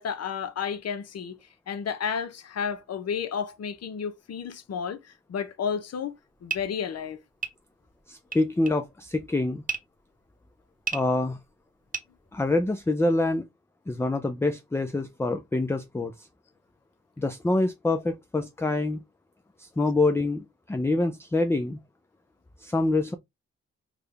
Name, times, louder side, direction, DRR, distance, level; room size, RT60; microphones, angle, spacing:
voice 1, 0.0-1.4 1.7-5.0 5.3-6.1 6.4-7.2, left 7 dB, 55° left, 0.7 m, -31 dB
sound 1, 6.1-12.9, right 5 dB, 30° right, 0.9 m, -37 dB
voice 2, 8.1-9.6 10.9-11.4 12.3-13.5 13.9-16.3 17.2-19.0 19.6-21.8 22.6-23.1, left 2 dB, 10° left, 0.4 m, -26 dB
3.6 x 2.2 x 3.1 m
supercardioid pair, 45°, 30 cm